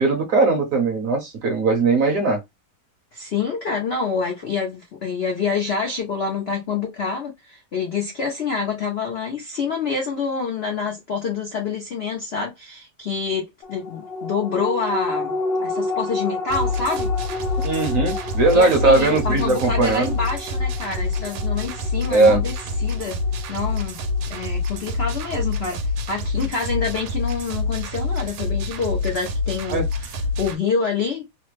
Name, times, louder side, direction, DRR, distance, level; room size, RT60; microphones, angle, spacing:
voice 1, 0.0-2.4 17.6-20.1 22.1-22.4 29.7-29.8, right 3 dB, 60° right, 0.9 m, -19 dB
voice 2, 3.1-17.1 18.5-22.5 22.8-23.2 23.5-24.0 24.3-31.2, left 5 dB, 90° left, 0.5 m, -27 dB
sound 1, 13.6-24.4 24.8-24.9, left 2 dB, 75° left, 1.3 m, -31 dB
sound 2, 16.5-30.5, left 3 dB, 90° right, 1.4 m, -26 dB
3.3 x 2.1 x 3.1 m
omnidirectional pair, 2.1 m